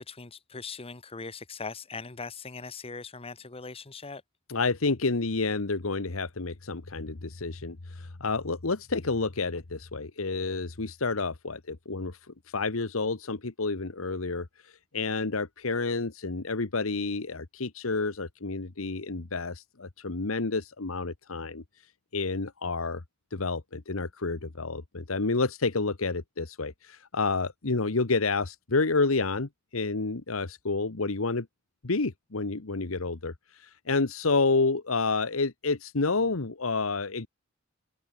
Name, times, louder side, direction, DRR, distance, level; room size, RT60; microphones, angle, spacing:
voice 1, 0.0-4.2, left 4 dB, 30° left, 1.1 m, -40 dB
voice 2, 4.5-12.2 12.5-21.6 22.1-23.0 23.3-31.5 31.8-37.3, left 3 dB, 90° left, 1.3 m, -29 dB
open air
head